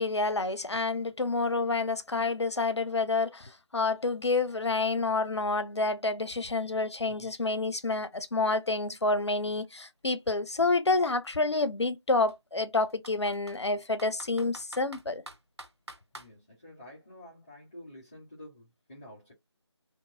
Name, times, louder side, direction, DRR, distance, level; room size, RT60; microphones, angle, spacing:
voice 1, 0.0-15.2, left 3 dB, 70° left, 0.6 m, -28 dB
voice 2, 7.0-7.4 16.1-19.3, left 1 dB, 15° left, 0.7 m, -50 dB
Computer keyboard, 8.0-8.1 8.4-10.4 11.1-11.3 11.6-11.7 12.3-13.6 14.0-16.3, right 1 dB, 65° right, 1.0 m, -49 dB
2.9 x 2.7 x 2.5 m
figure-of-eight pair, 165°, 15 cm